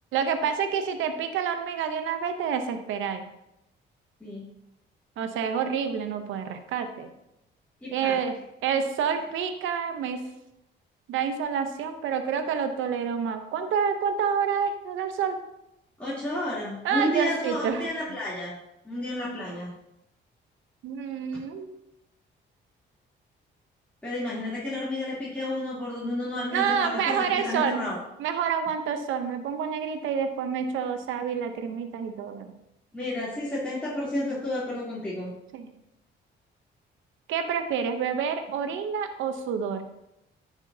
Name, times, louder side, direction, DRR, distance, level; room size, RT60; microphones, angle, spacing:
voice 1, 0.1-3.2 5.2-7.1 7.9-8.4 8.6-10.2 11.1-15.4 16.8-18.1 20.8-21.8 26.5-27.8 28.2-32.5 35.5-35.7 37.3-39.9, right 7 dB, 85° right, 8 dB, 0.8 m, -28 dB
voice 2, 7.8-8.2 16.0-18.6 18.8-19.7 24.0-28.0 32.9-35.3, left 1 dB, 5° left, -10 dB, 3.0 m, -31 dB
10.0 x 7.2 x 2.8 m, 0.86 s
cardioid pair, 90°, 20 cm